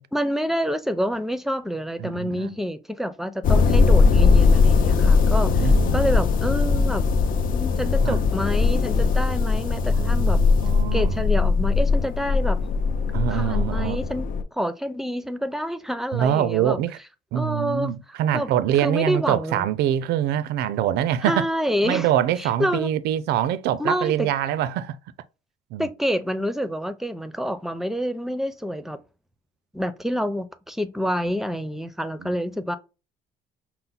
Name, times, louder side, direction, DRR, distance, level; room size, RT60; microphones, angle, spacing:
voice 1, 0.1-7.0 7.5-10.4 10.9-12.6 13.3-16.8 17.4-17.9 18.3-18.5 18.8-19.7 21.2-22.1 22.4-22.9 23.8-24.3 25.8-29.0 29.7-32.8, equal, ahead, 0.5 m, -27 dB
voice 2, 2.0-2.6 5.6-6.0 8.0-8.2 9.9-11.2 13.1-14.0 16.1-17.0 17.3-21.4 21.8-25.0 25.7-25.9 32.2-32.4, right 11 dB, 75° right, 0.4 m, -24 dB
sound 1, 3.4-14.4, left 4 dB, 55° left, 0.6 m, -20 dB
5.6 x 2.1 x 3.9 m
cardioid pair, 110°, 17 cm